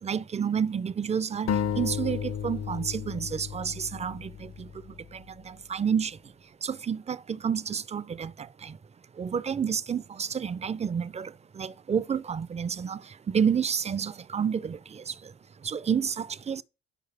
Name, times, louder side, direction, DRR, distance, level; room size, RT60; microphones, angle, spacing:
voice 1, 0.0-6.3 6.6-8.8 9.2-15.3 15.6-16.6, right 7 dB, 20° right, 0.4 m, -30 dB
sound 1, 1.5-5.1, left 8 dB, 60° left, 0.8 m, -33 dB
9.9 x 4.8 x 3.4 m
cardioid pair, 90°, 30 cm